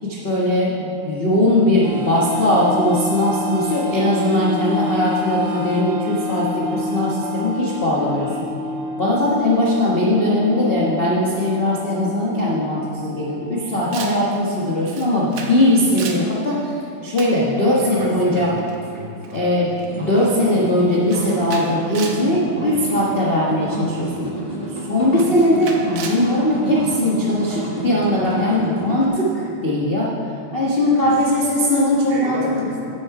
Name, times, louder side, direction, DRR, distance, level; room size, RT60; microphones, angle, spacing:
voice 1, 0.0-8.5 9.0-18.5 19.3-24.3 24.8-30.1 30.5-32.7, left 1 dB, 65° left, -7 dB, 0.5 m, -19 dB
sound 1, 1.8-14.9, left 2 dB, 90° right, 1.0 m, -29 dB
Camera, 13.9-14.2 14.9-15.6 15.9-16.3 17.2-17.4 18.6-18.8 19.2-19.4 19.7-19.9 20.2-20.5 21.1-22.3 22.9-23.1 24.2-24.3 25.2-26.3, right 5 dB, 75° right, 1.2 m, -34 dB
voice 2, 17.9-19.8 31.0-31.1 32.1-32.9, right 2 dB, 55° right, -2 dB, 2.0 m, -33 dB
sound 2, 19.9-29.1, right 2 dB, 30° right, 0.5 m, -30 dB
10.0 x 8.4 x 4.8 m, 2.6 s
omnidirectional pair, 3.3 m